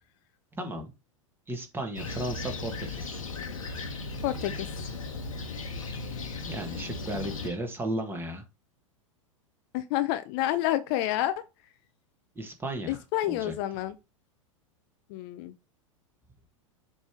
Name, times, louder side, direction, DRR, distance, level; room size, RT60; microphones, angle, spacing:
voice 1, 0.5-0.9 1.5-3.2 6.3-8.4 12.3-13.5, right 1 dB, 15° right, 1.7 m, -35 dB
Fixed-wing aircraft airplane, 2.0-7.5, left 3 dB, 80° left, 1.2 m, -36 dB
sound 1, 2.1-7.6, left 5 dB, 20° left, 1.5 m, -53 dB
voice 2, 4.2-4.8 9.7-11.4 12.9-13.9 15.1-15.5, left 13 dB, 45° left, 0.6 m, -29 dB
7.2 x 3.4 x 4.6 m
figure-of-eight pair, 95°, 17 cm